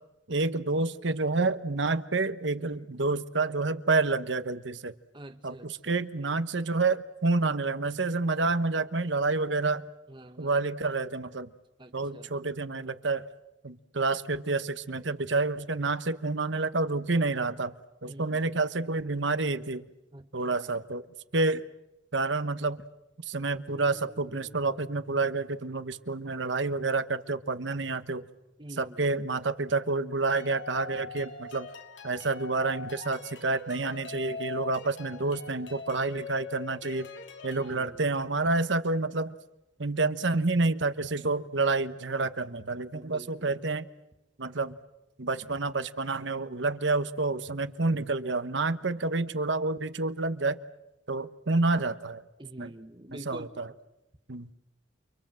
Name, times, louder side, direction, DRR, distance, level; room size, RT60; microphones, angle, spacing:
voice 1, 0.3-4.9 5.4-9.8 10.4-11.5 11.9-13.3 13.6-17.8 18.0-19.8 20.3-21.0 21.3-21.6 22.1-22.8 23.3-28.2 28.8-31.7 32.0-37.1 37.4-39.4 39.8-43.8 44.4-44.7 45.2-50.6 51.1-52.2 52.6-52.7 53.3-53.7 54.3-54.5, right 3 dB, 70° right, 12 dB, 1.2 m, -29 dB
voice 2, 5.1-6.0 10.1-10.6 11.8-12.3 18.0-18.6 20.1-20.8 28.6-29.1 37.5-38.2 42.9-43.6 52.4-53.5, right 1 dB, 25° right, 8 dB, 1.6 m, -47 dB
sound 1, 23.7-31.6, equal, 30° left, 2.7 m, -58 dB
sound 2, 30.4-37.7, left 4 dB, 75° left, 3.1 m, -42 dB
29.5 x 25.0 x 7.7 m, 0.94 s
head